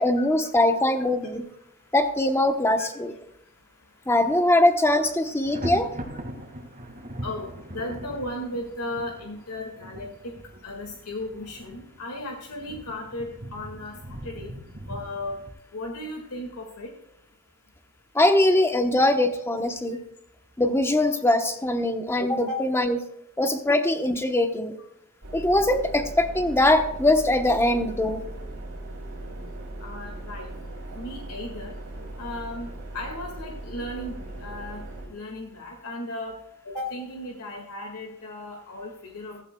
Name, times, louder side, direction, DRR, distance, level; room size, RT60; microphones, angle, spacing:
voice 1, 0.0-1.4 1.9-3.1 4.1-5.9 18.1-20.0 20.6-23.0 23.4-24.7 25.3-28.2, left 1 dB, 10° left, 6 dB, 0.9 m, -22 dB
Thunder, 4.1-4.4 4.7-15.5, equal, 40° right, 1.9 m, -40 dB
voice 2, 7.2-10.3 10.6-14.5 14.9-15.4 15.7-16.9 22.4-22.6 29.8-30.5 30.9-31.8 32.2-32.7 32.9-34.8 35.1-36.4 36.7-39.4, left 1 dB, 80° left, 1 dB, 1.9 m, -35 dB
sound 1, 25.2-35.1, right 1 dB, 75° right, 3.4 m, -38 dB
15.5 x 15.0 x 2.3 m, 0.82 s
head